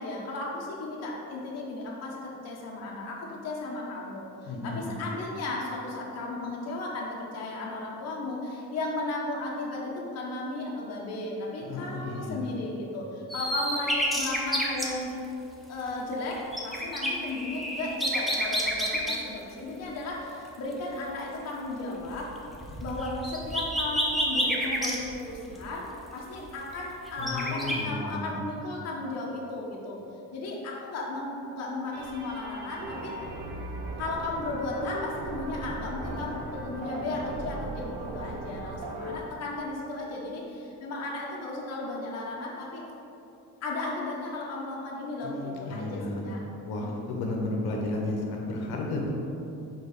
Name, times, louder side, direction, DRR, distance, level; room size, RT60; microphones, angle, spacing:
voice 1, 0.0-15.1 15.7-22.3 22.8-25.9 26.1-30.0 30.3-33.1 34.0-42.8 43.6-46.4 46.8-47.2, left 2 dB, 45° left, -3 dB, 1.0 m, -35 dB
voice 2, 4.5-5.0 11.6-12.5 27.2-28.4 45.2-46.2 46.6-49.1, left 2 dB, 80° left, 0 dB, 1.0 m, -33 dB
sound 1, 13.3-14.9 16.1-19.2 22.0-25.6 26.4-26.5 26.7-27.8, equal, ahead, 0.4 m, -29 dB
sound 2, 31.9-39.2, right 2 dB, 85° right, 0.9 m, -38 dB
4.5 x 3.9 x 5.4 m, 2.8 s
cardioid pair, 170°, 36 cm